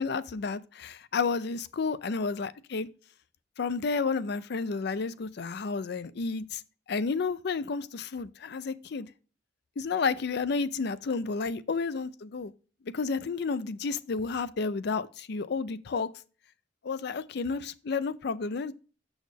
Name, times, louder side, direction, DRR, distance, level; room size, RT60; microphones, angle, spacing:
voice 1, 0.0-2.9 3.6-6.6 6.9-9.1 9.8-12.5 12.9-16.1 16.8-18.7, left 4 dB, 65° left, 0.5 m, -31 dB
6.3 x 6.2 x 3.4 m
head